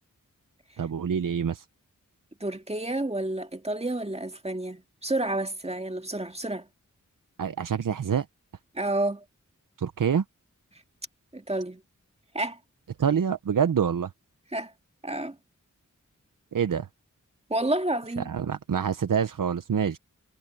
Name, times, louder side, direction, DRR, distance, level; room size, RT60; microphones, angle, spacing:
voice 1, 0.8-1.6 7.4-8.2 9.8-10.2 13.0-14.1 16.5-16.9 18.2-20.0, right 7 dB, 90° right, 0.7 m, -26 dB
voice 2, 2.4-6.7 8.7-9.2 11.3-11.8 12.3-12.6 14.5-14.7 15.0-15.4 17.5-18.3, right 1 dB, 20° right, 1.8 m, -30 dB
wide cardioid pair, 55°, 31 cm